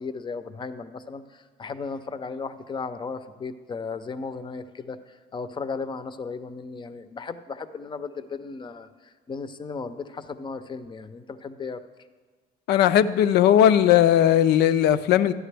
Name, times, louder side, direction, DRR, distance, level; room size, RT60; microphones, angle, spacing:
voice 1, 0.0-11.8, left 4 dB, 30° left, 0.5 m, -35 dB
voice 2, 12.7-15.3, left 10 dB, 80° left, 0.5 m, -18 dB
12.5 x 9.6 x 3.4 m
cardioid pair, 110°, 17 cm